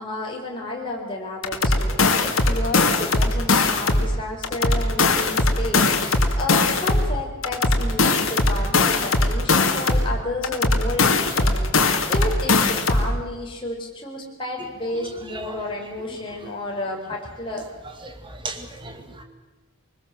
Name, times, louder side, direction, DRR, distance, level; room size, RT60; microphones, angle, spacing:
voice 1, 0.0-17.6, left 2 dB, 25° left, -2 dB, 4.7 m, -31 dB
sound 1, 1.4-4.1 4.4-7.1 7.4-10.1 10.4-13.1, left 3 dB, 75° left, 2.3 m, -20 dB
voice 2, 18.0-19.2, right 3 dB, 25° right, 5 dB, 2.2 m, -36 dB
23.5 x 20.5 x 7.6 m, 1.2 s
head